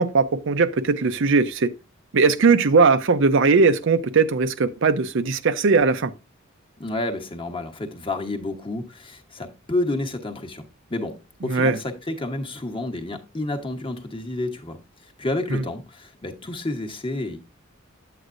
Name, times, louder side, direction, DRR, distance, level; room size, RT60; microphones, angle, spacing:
voice 1, 0.0-1.7 2.1-6.1 11.4-11.8 15.5-15.6, right 4 dB, 65° right, 0.6 m, -19 dB
voice 2, 6.8-10.6 10.9-17.4, left 2 dB, 25° left, 1.1 m, -30 dB
9.0 x 7.9 x 2.5 m
head